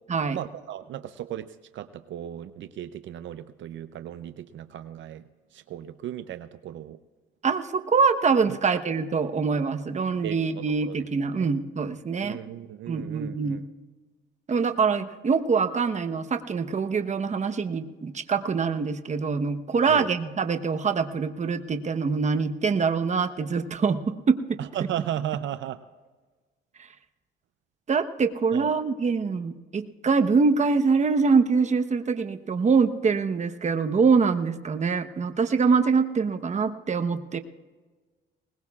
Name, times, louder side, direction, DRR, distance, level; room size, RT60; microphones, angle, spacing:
voice 1, 0.3-1.5 1.7-5.2 5.5-7.0 8.5-8.6 10.2-11.0 11.4-11.5 12.2-13.6 19.9-20.1 24.6-25.8 28.5-28.7, right 11 dB, 70° right, 11 dB, 0.6 m, -35 dB
voice 2, 7.4-12.4 12.9-13.6 14.5-24.6 27.9-37.4, right 5 dB, 35° right, 9 dB, 1.0 m, -24 dB
21.0 x 19.5 x 2.4 m, 1.3 s
cardioid pair, 90°, 20 cm